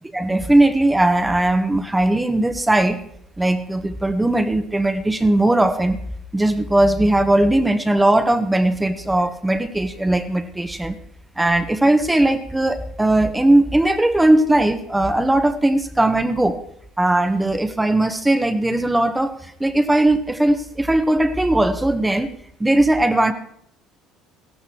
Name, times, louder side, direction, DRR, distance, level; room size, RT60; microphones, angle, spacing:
voice 1, 0.1-3.0 3.4-6.0 6.3-11.0 11.4-16.6 17.0-22.3 22.6-23.3, right 1 dB, 10° right, 10 dB, 1.4 m, -18 dB
16.0 x 13.5 x 4.6 m, 0.70 s
hypercardioid pair, 75°, 0 cm